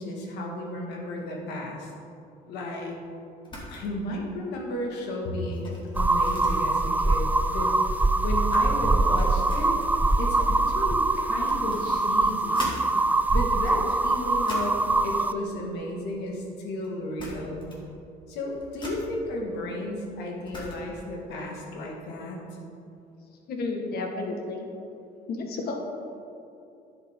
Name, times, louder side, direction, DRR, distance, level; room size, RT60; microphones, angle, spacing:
voice 1, 0.0-1.9 2.5-2.9 3.7-7.7 8.2-9.7 10.2-12.7 13.3-17.7 18.3-22.4, left 1 dB, 85° left, -1 dB, 1.8 m, -33 dB
sound 1, 3.4-3.8 4.1-4.4 4.7-12.8 13.4-14.9 15.8-16.6 16.8-16.9 17.2-17.9 18.2-21.1, left 1 dB, 30° left, 2.2 m, -43 dB
sound 2, 6.0-15.3, right 2 dB, 10° right, 0.3 m, -23 dB
voice 2, 23.5-24.6 25.3-25.8, left 3 dB, 65° left, 2 dB, 1.5 m, -31 dB
10.5 x 8.0 x 3.7 m, 2.6 s
cardioid pair, 110°, 17 cm